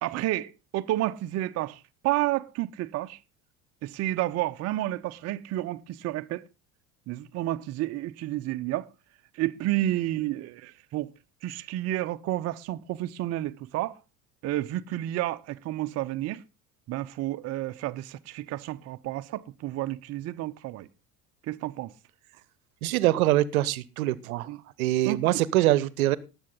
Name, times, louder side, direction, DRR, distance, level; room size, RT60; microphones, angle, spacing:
voice 1, 0.0-3.2 3.8-6.4 7.1-8.9 9.3-11.1 11.4-14.0 14.4-16.4 16.9-20.9 21.5-21.9 24.5-24.6 25.0-25.2, right 15 dB, 35° right, 0.6 m, -30 dB
voice 2, 22.8-24.5 24.8-26.2, right 15 dB, 65° right, 0.8 m, -24 dB
19.0 x 7.0 x 3.8 m
figure-of-eight pair, 65°, 45 cm